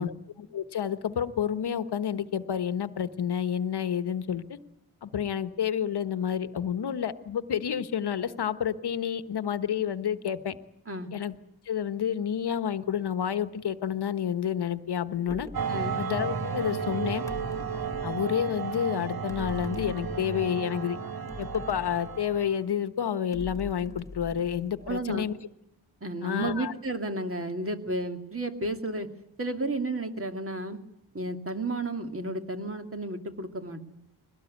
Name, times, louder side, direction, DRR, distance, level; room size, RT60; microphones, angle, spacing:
voice 1, 0.0-4.6 5.0-10.5 11.1-11.3 11.7-15.5 16.0-17.2 18.0-21.0 21.4-25.3 26.2-26.7, left 9 dB, 75° left, 11 dB, 1.3 m, -29 dB
sound 1, 15.3-15.7 17.3-18.2 19.3-20.5 21.3-22.6 23.3-25.2, left 3 dB, 10° left, 1.5 m, -43 dB
sound 2, 15.5-22.6, right 6 dB, 60° right, 1.9 m, -33 dB
voice 2, 24.8-25.3 26.0-29.1 29.4-30.8 31.1-33.9, right 2 dB, 35° right, 5 dB, 2.4 m, -32 dB
22.0 x 18.5 x 9.5 m, 0.82 s
wide cardioid pair, 110°, 40 cm